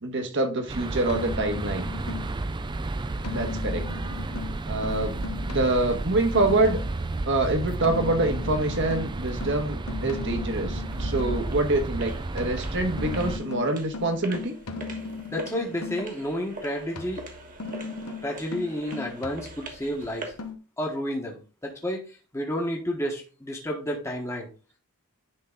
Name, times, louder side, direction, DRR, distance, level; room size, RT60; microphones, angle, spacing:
voice 1, 0.0-1.9 3.3-3.8 4.7-6.8 7.2-14.5, right 2 dB, 55° right, 5 dB, 1.5 m, -26 dB
sound 1, 0.7-13.4, right 2 dB, 20° right, 0.4 m, -32 dB
sound 2, 1.1-2.5 3.2-7.0 7.8-11.5 12.4-16.2 17.0-19.9 20.4-20.6, left 4 dB, 90° left, 1.0 m, -38 dB
sound 3, 10.4-20.5, right 2 dB, 35° right, 1.5 m, -44 dB
voice 2, 15.3-17.2 18.2-20.3 20.8-24.5, equal, 15° left, 0 dB, 1.3 m, -31 dB
10.0 x 3.8 x 3.8 m, 0.34 s
head